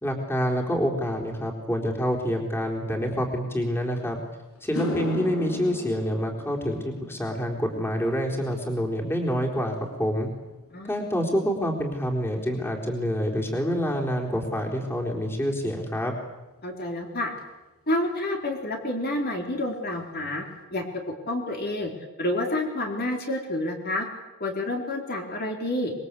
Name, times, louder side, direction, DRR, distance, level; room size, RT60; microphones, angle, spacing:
voice 1, 0.0-4.2 4.6-10.3 10.8-16.1, equal, 10° left, 0 dB, 4.1 m, -27 dB
sound 1, 4.0-4.1 4.5-13.1 13.3-13.8 17.4-17.5 19.1-19.2 19.5-19.6 19.9-20.4, left 2 dB, 75° left, 5.4 m, -38 dB
voice 2, 16.6-17.3 17.9-20.4 20.7-20.8 21.3-21.9 22.2-24.1 24.4-25.9, left 1 dB, 45° left, 2 dB, 3.8 m, -28 dB
26.0 x 22.5 x 8.4 m, 1.1 s
head